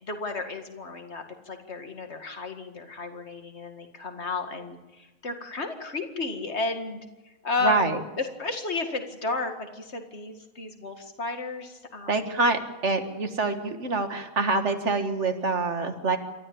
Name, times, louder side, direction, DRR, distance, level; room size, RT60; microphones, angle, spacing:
voice 1, 0.0-12.4, left 3 dB, 50° left, 6 dB, 2.3 m, -33 dB
voice 2, 7.6-8.0 12.1-16.2, right 3 dB, 55° right, 7 dB, 1.9 m, -26 dB
28.5 x 13.5 x 8.7 m, 1.1 s
omnidirectional pair, 1.5 m